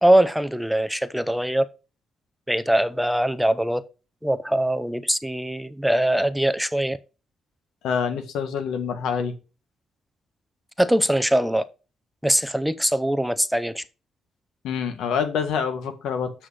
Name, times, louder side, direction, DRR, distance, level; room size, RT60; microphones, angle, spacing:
voice 1, 0.0-1.7 2.5-3.8 4.2-7.0 10.8-11.6 12.2-13.8, right 1 dB, ahead, 0.6 m, -22 dB
voice 2, 7.8-9.3 14.6-16.3, left 6 dB, 80° left, 1.7 m, -26 dB
7.7 x 6.0 x 4.9 m
cardioid pair, 90°, 0 cm